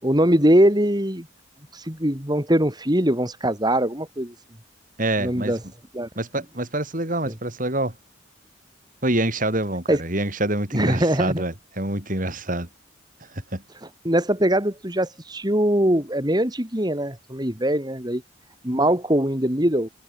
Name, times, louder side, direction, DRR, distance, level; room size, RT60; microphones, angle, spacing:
voice 1, 0.0-1.3 1.7-4.3 5.2-5.6 5.9-6.1 7.3-7.4 9.9-10.0 10.7-11.4 14.0-18.2 18.6-19.9, right 1 dB, 20° right, 4.1 m, -21 dB
voice 2, 5.0-5.5 6.2-7.9 9.0-12.7 13.5-13.6, right 1 dB, 45° right, 6.3 m, -26 dB
head